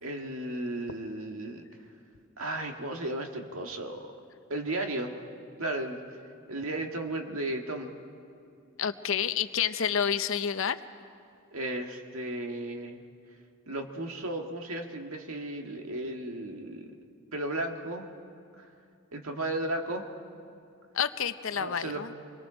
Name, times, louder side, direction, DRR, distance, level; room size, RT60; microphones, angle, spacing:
voice 1, 0.0-1.6 2.4-4.0 4.5-5.1 5.6-6.0 6.5-7.9 11.5-13.0 13.7-16.8 17.3-18.1 18.6-18.7 19.1-20.0 21.5-22.1, right 1 dB, 80° right, 3 dB, 1.8 m, -34 dB
voice 2, 8.8-10.8 20.9-22.2, left 8 dB, 65° left, 11 dB, 0.7 m, -29 dB
27.0 x 22.0 x 5.0 m, 2.5 s
head